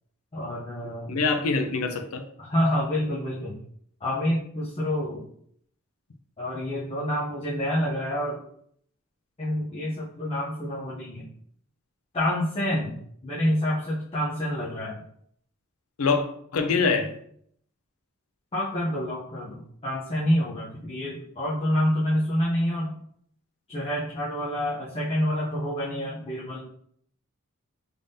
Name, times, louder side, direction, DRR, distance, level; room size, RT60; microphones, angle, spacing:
voice 1, 0.3-1.1 2.4-3.6 4.0-5.3 6.4-8.4 9.4-11.3 12.1-13.0 13.2-15.0 18.5-22.9 23.7-26.6, equal, 25° left, -7 dB, 0.7 m, -27 dB
voice 2, 1.1-2.2 16.0-16.3 16.5-17.1, left 4 dB, 75° left, 6 dB, 0.5 m, -24 dB
3.6 x 3.4 x 2.7 m, 0.66 s
head